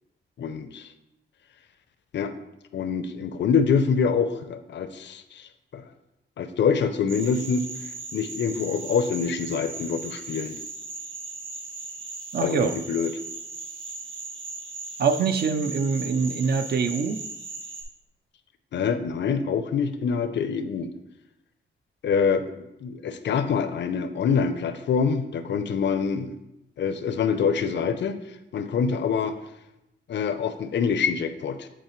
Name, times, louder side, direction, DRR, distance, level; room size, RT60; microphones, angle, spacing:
voice 1, 0.4-0.9 2.1-2.3 2.7-5.9 6.4-7.7 8.1-10.6 12.4-13.1 18.7-20.9 22.0-22.4 22.8-26.3 26.8-28.2 28.5-29.3 30.1-31.7, left 6 dB, 65° left, 10 dB, 0.5 m, -25 dB
sound 1, 7.1-17.8, right 3 dB, 75° right, 1.1 m, -38 dB
voice 2, 12.3-12.7 15.0-17.2, right 5 dB, 55° right, 9 dB, 0.5 m, -24 dB
8.0 x 4.0 x 3.1 m, 0.87 s
cardioid pair, 100°, 20 cm